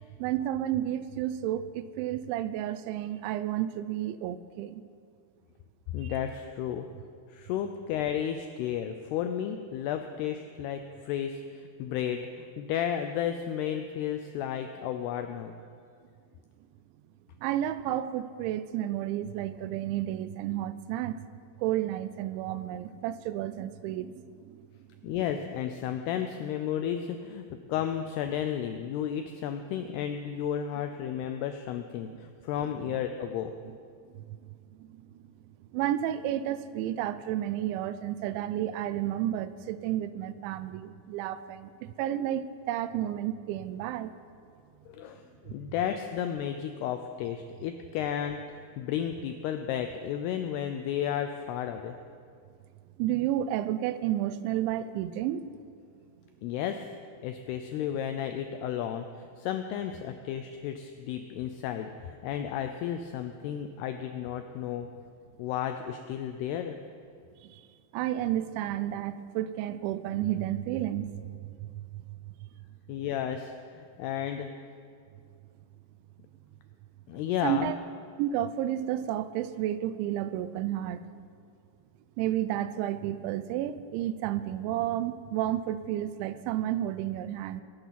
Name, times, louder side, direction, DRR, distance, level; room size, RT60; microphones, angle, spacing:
voice 1, 0.2-4.8 6.0-6.1 17.4-24.1 24.4-24.7 32.9-33.0 34.1-34.5 34.8-35.0 35.7-44.1 53.0-55.4 67.4-67.6 67.9-72.0 77.4-77.8 78.2-81.0 82.2-87.6, right 12 dB, 85° right, 14 dB, 2.9 m, -31 dB
voice 2, 5.9-6.9 7.3-15.6 25.0-33.5 44.9-52.0 56.4-56.8 57.2-64.9 65.4-66.8 72.9-74.5 77.1-77.7, left 9 dB, 85° left, 7 dB, 2.3 m, -33 dB
20.5 x 9.5 x 5.7 m, 2.2 s
omnidirectional pair, 5.3 m